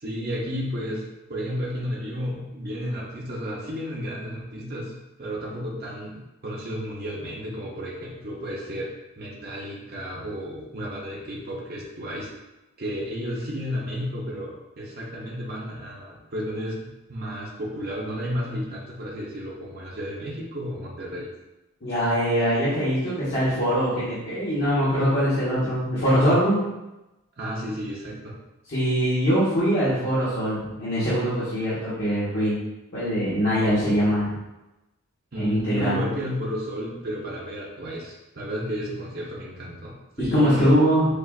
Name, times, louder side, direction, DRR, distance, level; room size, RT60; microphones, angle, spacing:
voice 1, 0.0-12.3 12.8-21.3 27.4-28.4 35.3-40.7, equal, 45° right, -4 dB, 0.7 m, -32 dB
voice 2, 21.8-26.6 28.7-32.6 32.9-34.3 35.3-36.0 40.2-41.1, equal, 45° left, -11 dB, 1.2 m, -22 dB
6.5 x 2.5 x 2.4 m, 1.0 s
head